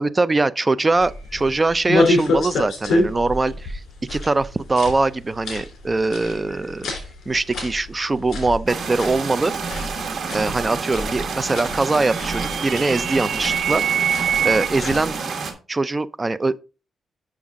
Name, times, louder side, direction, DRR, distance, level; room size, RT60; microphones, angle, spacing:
voice 1, 0.0-3.8 4.1-6.9 7.3-9.5 10.3-13.8 14.4-15.2 15.7-16.6, right 3 dB, 20° right, 0.4 m, -22 dB
sound 1, 0.9-15.1, left 2 dB, 70° left, 3.2 m, -28 dB
sound 2, 8.7-15.5, right 5 dB, 55° right, 1.8 m, -29 dB
sound 3, 11.5-14.7, right 8 dB, 90° right, 0.4 m, -25 dB
7.2 x 6.1 x 3.6 m
wide cardioid pair, 145°, 0 cm